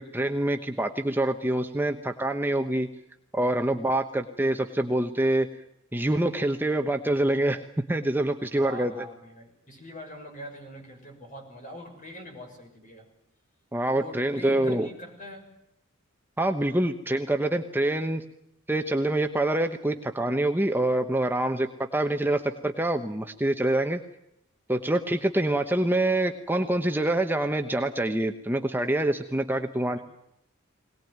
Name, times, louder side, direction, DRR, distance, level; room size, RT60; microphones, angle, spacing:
voice 1, 0.0-2.9 3.3-5.5 5.9-7.6 7.9-9.0 13.7-14.9 16.4-18.2 18.7-24.0 24.7-30.0, right 1 dB, 10° right, 6 dB, 1.0 m, -26 dB
voice 2, 8.5-13.1 13.9-15.6 29.9-30.0, equal, 40° left, 3 dB, 6.7 m, -43 dB
22.0 x 19.0 x 9.4 m, 0.79 s
head